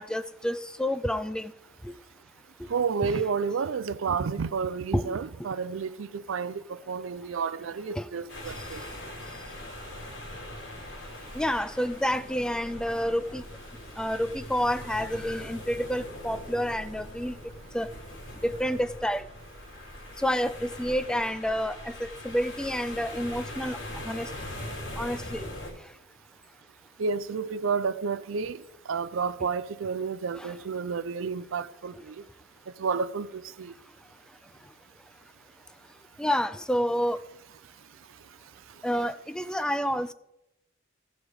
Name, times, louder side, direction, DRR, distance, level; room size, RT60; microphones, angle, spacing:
voice 1, 0.0-1.5 1.8-1.9 4.9-5.2 8.0-8.1 11.3-13.4 14.0-17.3 17.7-17.9 18.4-19.2 20.2-23.8 24.1-24.3 25.0-25.5 29.4-29.5 30.4-30.5 36.2-37.2 38.8-40.1, equal, 5° left, 0.3 m, -29 dB
voice 2, 2.7-8.8 27.0-28.6 28.9-32.2 32.8-33.7, right 5 dB, 85° right, 0.5 m, -30 dB
sound 1, 8.3-25.7, left 1 dB, 65° left, 3.0 m, -41 dB
14.0 x 5.1 x 4.8 m
head